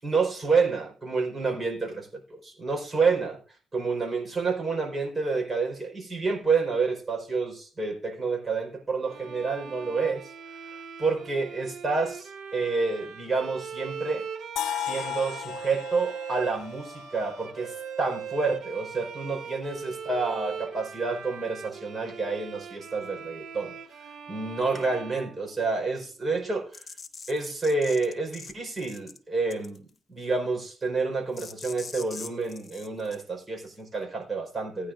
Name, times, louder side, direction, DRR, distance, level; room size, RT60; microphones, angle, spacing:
voice 1, 0.0-3.4 3.7-10.2 11.0-14.2 14.7-23.7 24.3-26.8 27.3-34.9, right 4 dB, 25° right, 2 dB, 4.6 m, -29 dB
Bowed string instrument, 9.1-26.0, right 7 dB, 70° right, 1.2 m, -40 dB
sound 1, 14.6-18.5, left 11 dB, 75° left, 0.5 m, -36 dB
sound 2, 26.7-28.5 28.8-29.2 29.5-29.9 31.3-33.2, left 5 dB, 35° left, 1.2 m, -42 dB
18.5 x 9.7 x 2.6 m, 0.42 s
cardioid pair, 90°, 0 cm